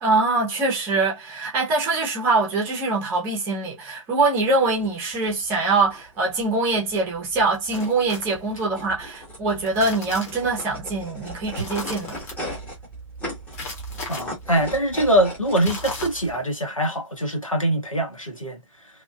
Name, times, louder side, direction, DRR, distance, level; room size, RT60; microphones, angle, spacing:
voice 1, 0.0-12.2, right 3 dB, 15° right, 0.8 m, -23 dB
sound 1, 4.4-16.4, right 1 dB, 10° left, 1.2 m, -38 dB
sound 2, 7.7-8.7 9.5-10.6 11.5-12.4 13.5-14.2 15.5-16.4, left 2 dB, 30° left, 1.2 m, -35 dB
voice 2, 14.1-18.6, right 1 dB, 90° left, 1.3 m, -23 dB
2.8 x 2.4 x 2.3 m
figure-of-eight pair, 135°, 17 cm